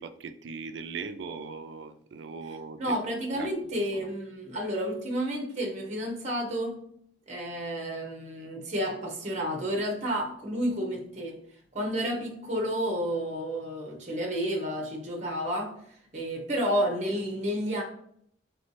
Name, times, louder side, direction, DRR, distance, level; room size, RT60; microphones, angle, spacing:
voice 1, 0.0-3.0 3.3-3.5 3.9-4.1, right 5 dB, 70° right, 10 dB, 0.4 m, -39 dB
voice 2, 2.8-6.8 7.3-11.4 11.7-17.8, equal, 40° right, 2 dB, 0.8 m, -31 dB
4.2 x 3.3 x 3.0 m, 0.68 s
head